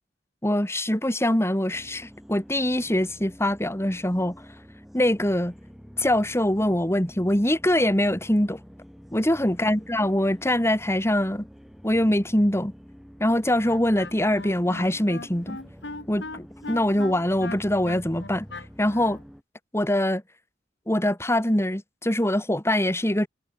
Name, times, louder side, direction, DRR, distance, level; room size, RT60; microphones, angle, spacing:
voice 1, 0.4-4.4 4.9-5.5 6.0-8.6 9.1-11.5 11.8-12.7 13.2-15.6 16.1-18.5 18.8-19.2 19.7-20.2 20.9-23.3, left 1 dB, 15° left, 3.3 m, -23 dB
sound 1, 1.7-19.4, equal, ahead, 4.5 m, -47 dB
Wind instrument woodwind instrument, 13.6-19.2, left 2 dB, 90° left, 4.0 m, -39 dB
head